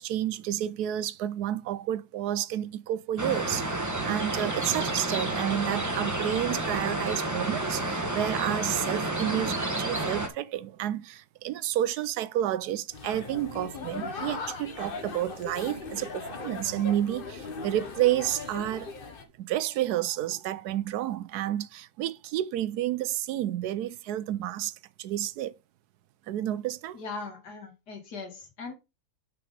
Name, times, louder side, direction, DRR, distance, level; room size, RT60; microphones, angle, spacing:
voice 1, 0.0-18.9 19.4-25.5 26.3-27.0, right 12 dB, 75° right, 1.1 m, -30 dB
sound 1, 3.2-10.3, right 2 dB, 15° right, 1.0 m, -30 dB
sound 2, 12.9-19.2, left 4 dB, 40° left, 1.1 m, -39 dB
voice 2, 26.9-28.7, left 4 dB, 80° left, 2.4 m, -39 dB
6.1 x 4.9 x 5.2 m
omnidirectional pair, 1.7 m